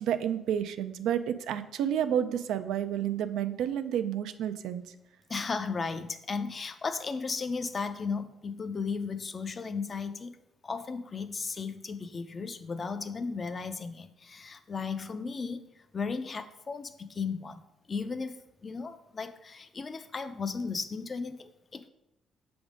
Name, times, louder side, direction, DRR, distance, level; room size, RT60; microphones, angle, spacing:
voice 1, 0.0-4.8, right 9 dB, 85° right, 10 dB, 0.4 m, -30 dB
voice 2, 5.3-10.3 10.6-17.6 17.9-21.9, left 5 dB, 40° left, 10 dB, 0.5 m, -35 dB
6.2 x 3.5 x 5.0 m, 0.87 s
cardioid pair, 90°, 0 cm